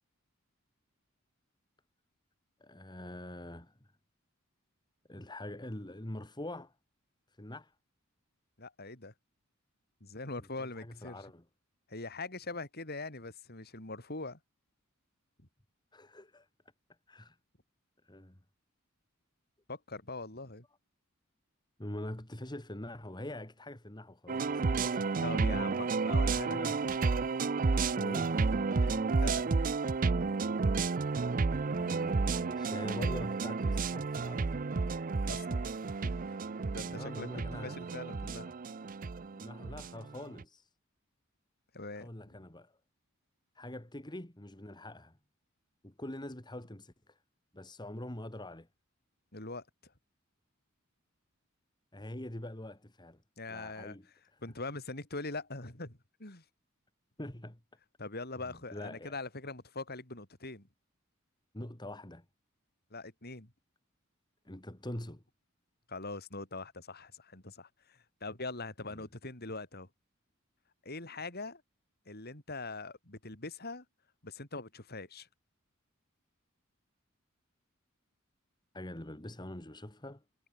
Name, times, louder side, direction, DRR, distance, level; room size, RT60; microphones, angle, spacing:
voice 1, 2.6-3.8 5.1-6.7 7.4-7.7 10.6-11.4 15.9-16.5 17.1-17.4 18.0-18.4 21.8-26.0 26.5-26.9 27.9-28.7 31.7-34.5 36.9-38.0 39.3-40.7 41.9-42.7 43.6-45.2 45.8-47.2 47.5-48.7 51.9-53.2 53.5-54.1 57.2-57.6 58.7-59.2 61.5-62.2 64.5-65.2 68.9-69.1 78.7-80.2, left 1 dB, 20° left, 2.2 m, -44 dB
voice 2, 8.6-9.1 10.0-11.2 11.9-14.4 19.7-20.6 24.5-24.6 25.2-26.8 28.8-29.4 35.3-35.7 36.0-36.1 36.7-38.6 41.7-42.1 49.3-49.9 53.4-54.0 54.4-56.4 58.0-60.7 62.9-63.5 65.9-69.9 70.8-71.6 72.1-73.9 74.2-75.3, left 3 dB, 50° left, 5.4 m, -42 dB
sound 1, 24.3-40.4, right 4 dB, 40° right, 0.5 m, -31 dB
head